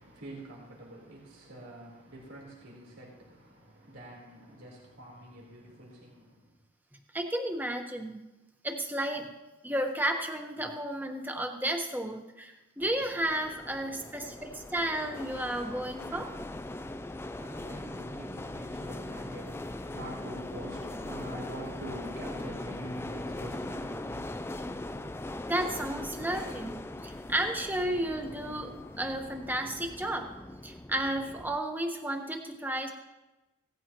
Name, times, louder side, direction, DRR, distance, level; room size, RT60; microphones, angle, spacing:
voice 1, 0.0-6.5 14.2-14.4 17.0-25.1, right 1 dB, 90° right, 3.9 m, -46 dB
voice 2, 7.1-8.2 8.6-9.3 9.6-16.3 25.4-30.3 30.6-32.9, right 1 dB, 10° right, 1.2 m, -33 dB
sound 1, 12.8-31.6, left 1 dB, 10° left, 0.3 m, -40 dB
17.5 x 14.5 x 3.0 m
head